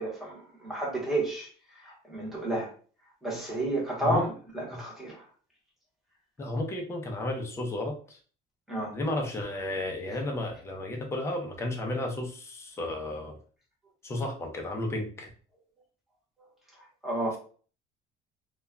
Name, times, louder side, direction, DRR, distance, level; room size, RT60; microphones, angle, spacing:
voice 1, 0.0-1.5 1.8-2.7 3.2-5.2 8.7-8.9 17.0-17.4, right 1 dB, ahead, -4 dB, 0.8 m, -31 dB
voice 2, 6.4-8.2 8.9-13.4 14.0-15.3, left 1 dB, 15° left, 1 dB, 0.4 m, -33 dB
2.2 x 2.1 x 3.4 m, 0.41 s
cardioid pair, 180°, 19 cm